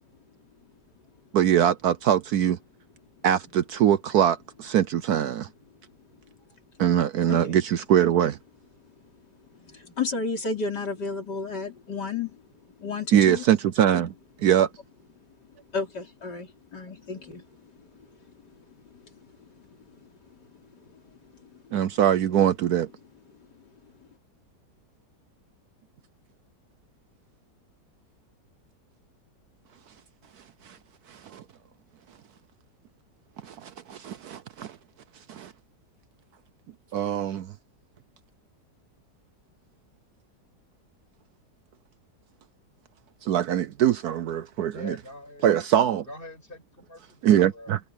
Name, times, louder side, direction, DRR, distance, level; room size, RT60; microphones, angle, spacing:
voice 1, 1.3-2.6 3.2-5.5 6.8-8.4 13.1-14.1 14.4-14.7 21.7-22.9 30.6-30.8 31.1-31.4 33.4-34.8 35.3-35.5 36.9-37.5 43.2-44.9 45.4-46.1 47.2-47.8, right 10 dB, 65° right, 1.1 m, -22 dB
voice 2, 9.5-12.4 12.8-13.4 15.7-20.1 20.7-21.7 23.5-23.6, left 4 dB, 70° left, 4.2 m, -34 dB
voice 3, 44.7-45.5 46.0-47.7, left 2 dB, 30° left, 7.5 m, -43 dB
omnidirectional pair, 1.9 m